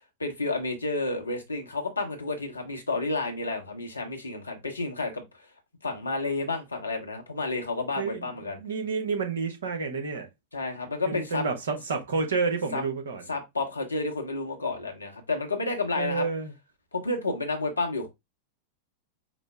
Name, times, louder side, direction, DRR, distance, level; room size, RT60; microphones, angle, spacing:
voice 1, 0.2-5.2 5.8-8.6 10.5-11.4 12.7-12.8 13.3-16.2 16.9-18.1, left 3 dB, 80° left, 1.1 m, -30 dB
voice 2, 8.0-10.3 11.0-13.3 16.0-16.5, right 4 dB, 65° right, 1.1 m, -30 dB
5.1 x 2.2 x 3.4 m
figure-of-eight pair, 90°, 0 cm